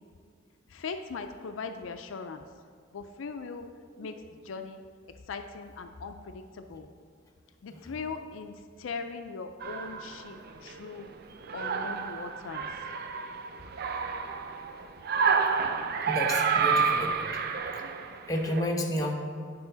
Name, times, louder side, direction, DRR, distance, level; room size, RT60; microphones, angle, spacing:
voice 1, 0.7-2.4 2.9-3.7 4.0-4.1 4.5-4.8 5.3-6.9 7.6-8.5 8.8-11.1 11.5-12.7, left 4 dB, 75° left, 7 dB, 0.4 m, -39 dB
sound 1, 9.6-10.9 11.3-18.6, right 5 dB, 55° right, 0.4 m, -29 dB
voice 2, 16.1-17.4 17.7-17.8 18.2-19.1, left 1 dB, 20° left, 0 dB, 0.9 m, -31 dB
9.3 x 5.6 x 3.9 m, 2.1 s
head